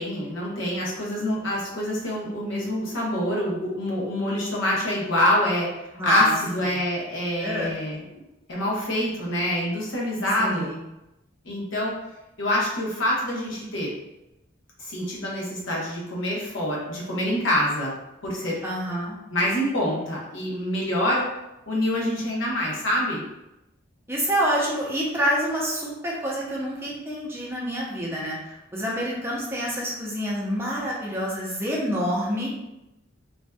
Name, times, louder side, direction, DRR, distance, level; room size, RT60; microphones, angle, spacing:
voice 1, 0.0-5.7 6.0-8.1 8.5-10.7 11.4-12.0 12.4-13.9 14.8-17.9 18.2-18.6 19.3-21.3 21.7-23.2, left 1 dB, 75° left, -3 dB, 0.8 m, -26 dB
voice 2, 5.9-6.4 7.4-7.7 10.4-10.8 18.6-19.2 24.1-32.5, equal, 15° right, -5 dB, 0.5 m, -27 dB
2.5 x 2.2 x 2.2 m, 0.93 s
head